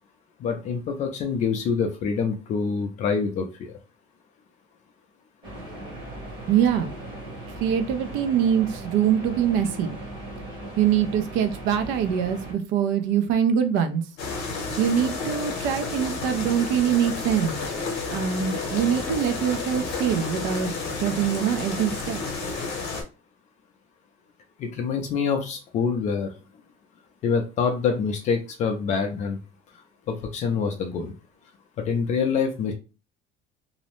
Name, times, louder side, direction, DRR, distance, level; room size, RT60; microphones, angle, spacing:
voice 1, 0.4-3.8 24.6-26.3 27.2-29.4 30.1-31.1 31.8-32.7, left 5 dB, 35° left, 3 dB, 0.4 m, -26 dB
sound 1, 5.4-12.5, right 1 dB, 20° right, 0.9 m, -38 dB
voice 2, 6.5-6.9 7.6-9.9 10.8-14.0 14.8-17.6 18.1-20.7 21.0-22.2, right 9 dB, 70° right, 9 dB, 0.5 m, -23 dB
sound 2, 14.2-23.0, left 3 dB, 50° left, 0.8 m, -31 dB
2.6 x 2.0 x 2.9 m, 0.31 s
cardioid pair, 180°, 20 cm